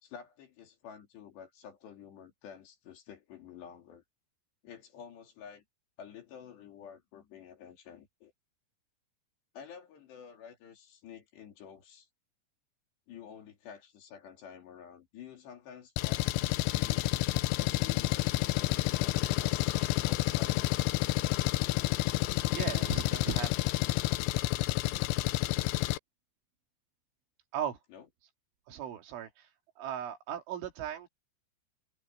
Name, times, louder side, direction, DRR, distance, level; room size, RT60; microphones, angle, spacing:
voice 1, 0.0-4.0 4.6-5.6 6.0-8.3 9.5-12.1 13.1-17.1 17.6-20.7 27.9-28.1, left 8 dB, 60° left, 4.9 m, -50 dB
Engine, 16.0-26.0, left 18 dB, 85° left, 2.8 m, -29 dB
voice 2, 22.5-23.5 27.5-27.8 28.7-29.3 29.8-31.1, right 9 dB, 70° right, 4.5 m, -37 dB
omnidirectional pair, 6.0 m